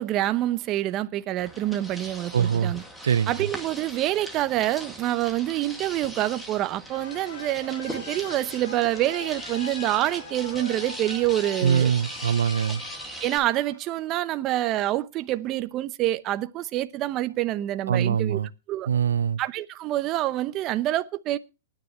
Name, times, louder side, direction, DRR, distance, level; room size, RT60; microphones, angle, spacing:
voice 1, 0.0-2.8 3.3-11.9 13.2-18.4 18.7-18.9 19.4-21.4, right 14 dB, 30° right, 0.8 m, -27 dB
sound 1, 1.4-13.4, equal, 5° left, 2.2 m, -40 dB
voice 2, 2.3-2.7 3.0-3.3 11.6-12.8 17.9-18.5 18.9-19.4, right 8 dB, 90° right, 0.5 m, -23 dB
sound 2, 6.9-14.3, left 4 dB, 75° left, 3.7 m, -42 dB
19.5 x 9.9 x 3.2 m
hypercardioid pair, 140°, 0 cm